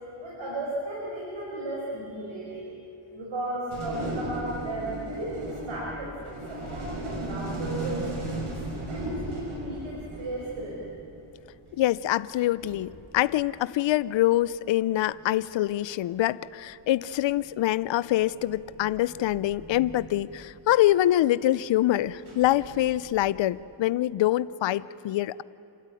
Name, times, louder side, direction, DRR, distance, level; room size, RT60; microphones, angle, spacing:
voice 1, 0.1-2.7 3.1-8.1 8.9-10.8, right 1 dB, 70° right, -5 dB, 5.9 m, -35 dB
sound 1, 3.7-11.1 12.3-12.4 12.6-13.9 15.0-15.3 16.4-16.5 17.1-17.4 18.2-20.6 22.1-23.3, right 1 dB, 90° right, 6.0 m, -36 dB
voice 2, 11.7-25.4, left 14 dB, 65° left, 18 dB, 0.6 m, -25 dB
27.0 x 13.0 x 9.8 m, 2.7 s
cardioid pair, 70°, 48 cm